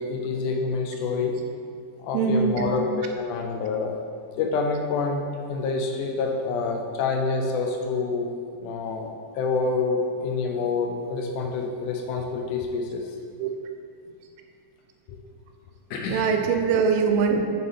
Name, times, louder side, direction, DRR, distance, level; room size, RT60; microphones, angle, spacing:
voice 1, 0.0-1.3 2.0-4.0 4.4-8.3 8.6-13.0 15.1-15.2 15.9-16.3, left 4 dB, 85° left, 1 dB, 1.8 m, -27 dB
voice 2, 2.1-2.7 13.4-13.5 16.1-17.4, right 6 dB, 85° right, 4 dB, 2.5 m, -22 dB
9.1 x 6.8 x 3.4 m, 2.2 s
omnidirectional pair, 4.3 m